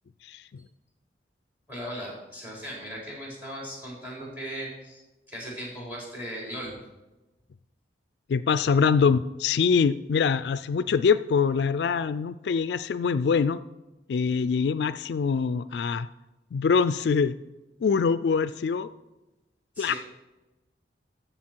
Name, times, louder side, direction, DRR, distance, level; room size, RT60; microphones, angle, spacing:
voice 1, 0.2-0.6 8.3-13.6 14.1-16.1 16.5-17.4 17.8-18.9 19.8-19.9, left 5 dB, 65° left, 14 dB, 0.3 m, -24 dB
voice 2, 1.7-5.0 5.3-6.8 19.8-20.0, equal, 10° right, -3 dB, 4.2 m, -37 dB
14.5 x 6.9 x 4.5 m, 1.0 s
head